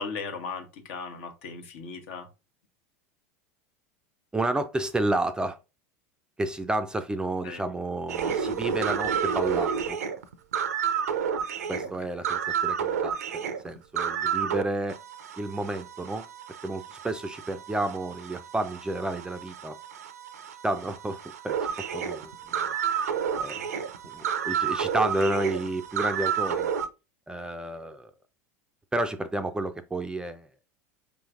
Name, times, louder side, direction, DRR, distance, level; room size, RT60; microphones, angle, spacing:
voice 1, 0.0-2.3 7.4-7.6 23.5-23.6, left 5 dB, 65° left, 0.9 m, -37 dB
voice 2, 4.3-5.6 6.4-10.0 11.7-15.0 15.4-16.2 16.6-19.8 20.6-22.7 23.3-23.6 24.1-26.7 27.3-28.1 28.9-30.5, right 2 dB, 10° right, 0.4 m, -31 dB
sound 1, 8.1-14.6 14.9-26.9, right 7 dB, 80° right, 0.5 m, -30 dB
4.8 x 3.1 x 2.4 m
hypercardioid pair, 90°, 8 cm